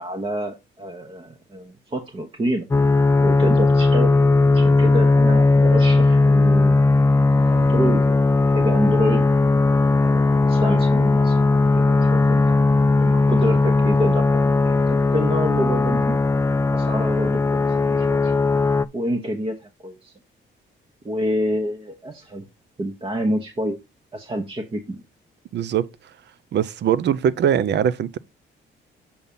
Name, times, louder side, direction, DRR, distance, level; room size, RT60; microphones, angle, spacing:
voice 1, 0.0-2.7 3.2-4.1 4.5-9.3 10.0-10.2 10.5-12.6 13.0-16.2 16.7-18.4 18.9-20.1 21.0-22.5 22.8-23.8 24.1-25.0, equal, 25° right, 1.1 m, -27 dB
sound 1, 2.7-18.9, left 3 dB, 15° left, 0.3 m, -18 dB
voice 2, 25.5-25.9 26.5-28.2, right 9 dB, 60° right, 0.6 m, -21 dB
7.2 x 4.0 x 5.3 m
cardioid pair, 90°, 20 cm